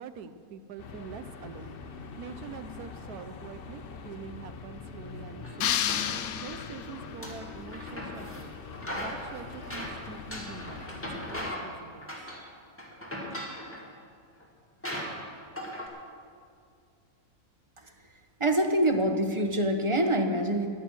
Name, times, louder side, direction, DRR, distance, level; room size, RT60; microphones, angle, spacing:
voice 1, 0.0-8.5 9.0-10.9 11.1-12.1, right 6 dB, 80° right, 11 dB, 1.2 m, -45 dB
sound 1, 0.8-11.5, left 5 dB, 50° left, 0.8 m, -44 dB
sound 2, 5.4-6.6 7.0-8.5 8.7-11.8 12.0-12.5 12.8-13.9 14.4-14.5 14.8-15.9, equal, 10° left, 2.1 m, -39 dB
sound 3, 5.6-7.1, left 10 dB, 70° left, 1.1 m, -30 dB
voice 2, 18.4-20.7, right 1 dB, 25° right, 5 dB, 0.9 m, -25 dB
16.0 x 11.0 x 6.3 m, 2.3 s
omnidirectional pair, 1.6 m